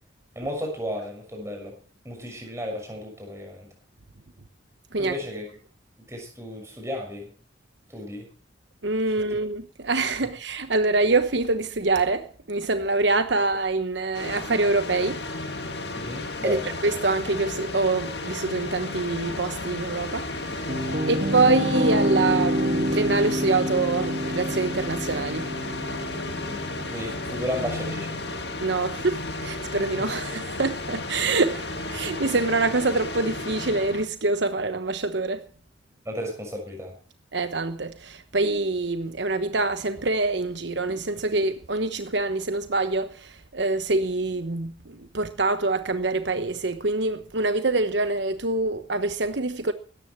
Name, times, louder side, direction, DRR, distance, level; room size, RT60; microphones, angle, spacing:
voice 1, 0.3-1.7 2.0-3.7 5.0-5.5 6.1-7.3 7.9-8.3 15.9-16.8 26.4-28.2 36.0-36.9, equal, 15° right, 6.6 m, -33 dB
voice 2, 8.8-15.2 16.4-20.2 21.0-25.4 28.6-35.4 37.3-44.7 45.1-49.7, right 3 dB, 70° right, 1.1 m, -25 dB
sound 1, 14.1-34.0, left 2 dB, 60° left, 2.4 m, -33 dB
sound 2, 20.3-29.4, equal, 40° right, 2.0 m, -28 dB
17.0 x 13.5 x 4.6 m
head